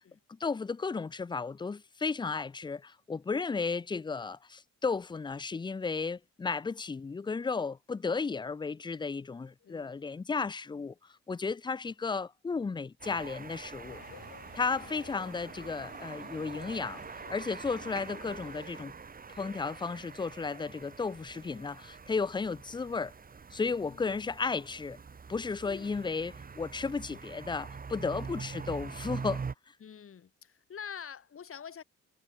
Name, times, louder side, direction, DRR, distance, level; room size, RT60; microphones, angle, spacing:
voice 1, 0.3-10.9 11.3-14.0 14.5-17.0 17.3-18.9 19.3-23.1 23.5-25.0 25.3-29.4, left 4 dB, 15° left, 0.4 m, -34 dB
voice 2, 9.6-10.0 14.5-15.0 23.8-24.0 25.6-26.0 28.0-28.3 29.8-31.8, left 7 dB, 45° left, 2.7 m, -47 dB
sound 1, 13.0-29.5, right 5 dB, 30° right, 1.4 m, -44 dB
sound 2, 13.8-18.8, left 12 dB, 70° left, 3.2 m, -54 dB
cardioid pair, 90°, 30 cm